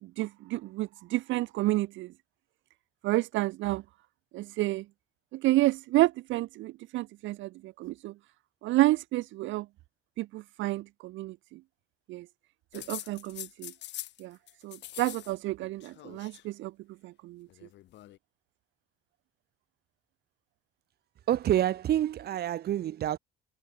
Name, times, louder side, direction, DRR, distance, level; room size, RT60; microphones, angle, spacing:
voice 1, 0.0-2.1 3.0-3.8 4.3-4.9 5.3-8.2 8.6-9.7 10.2-11.6 12.1-12.3 12.7-13.7 14.2-14.4 14.6-16.7 17.0-17.5, right 18 dB, 65° right, 0.5 m, -30 dB
sound 1, 12.7-14.2 14.5-15.3 15.6-16.4 17.5-18.2, left 14 dB, 60° left, 0.8 m, -43 dB
voice 2, 21.3-23.2, right 12 dB, 50° right, 1.3 m, -27 dB
cardioid pair, 160°, 21 cm